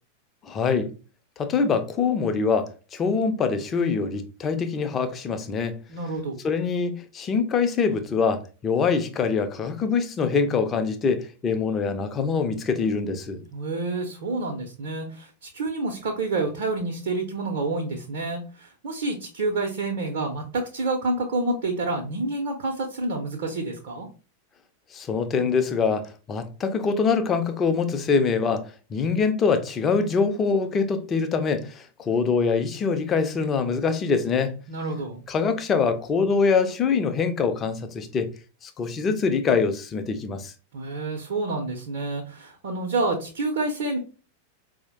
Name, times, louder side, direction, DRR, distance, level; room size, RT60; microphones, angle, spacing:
voice 1, 0.4-0.9 1.4-5.7 6.4-13.4 24.9-34.5 35.3-38.3 38.6-40.5, left 5 dB, 25° left, 0.5 m, -24 dB
voice 2, 5.9-6.4 13.5-24.1 34.7-35.2 40.7-44.0, right 2 dB, 55° right, 0.6 m, -28 dB
4.5 x 2.0 x 3.0 m
figure-of-eight pair, 90°, 0 cm